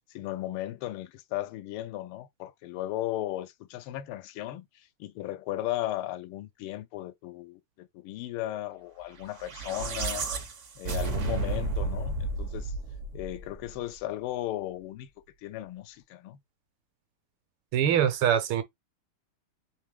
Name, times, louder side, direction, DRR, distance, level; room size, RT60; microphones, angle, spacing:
voice 1, 0.1-4.7 5.0-10.3 10.8-12.7 13.1-15.1 15.4-16.4, left 15 dB, 80° left, 1.5 m, -36 dB
sound 1, 9.3-13.7, right 3 dB, 60° right, 0.7 m, -32 dB
voice 2, 17.7-18.6, right 9 dB, 75° right, 1.5 m, -23 dB
3.7 x 2.9 x 3.4 m
omnidirectional pair, 2.4 m